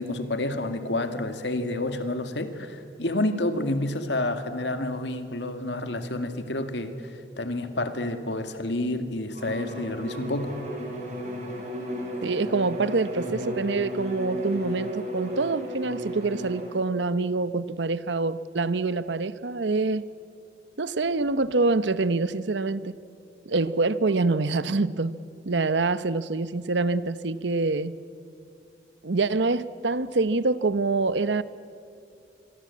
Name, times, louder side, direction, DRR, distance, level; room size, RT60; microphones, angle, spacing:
voice 1, 0.0-10.6, left 1 dB, 80° left, 2.1 m, -29 dB
Bowed string instrument, 9.3-16.8, equal, 40° right, 5.7 m, -34 dB
voice 2, 12.2-20.1 20.8-22.9 23.5-25.2 25.5-28.0 29.0-31.4, right 3 dB, 85° right, 0.9 m, -26 dB
26.0 x 23.0 x 8.5 m
head